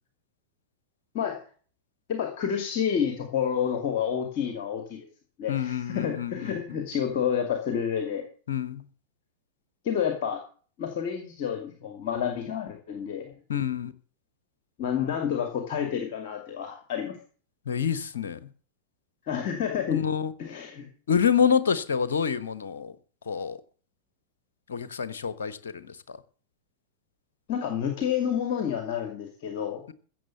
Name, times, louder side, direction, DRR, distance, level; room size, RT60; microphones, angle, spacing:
voice 1, 2.1-5.1 5.4-8.2 9.8-10.4 10.8-13.3 14.8-17.2 19.2-20.0 20.4-20.9 27.5-29.8, left 8 dB, 45° left, 2.3 m, -29 dB
voice 2, 5.5-6.6 8.5-8.9 13.5-13.9 17.7-18.5 19.9-20.3 21.1-22.9 23.3-23.6 24.7-26.2, left 7 dB, 65° left, 1.1 m, -27 dB
15.5 x 7.2 x 6.9 m
figure-of-eight pair, 90°, 0 cm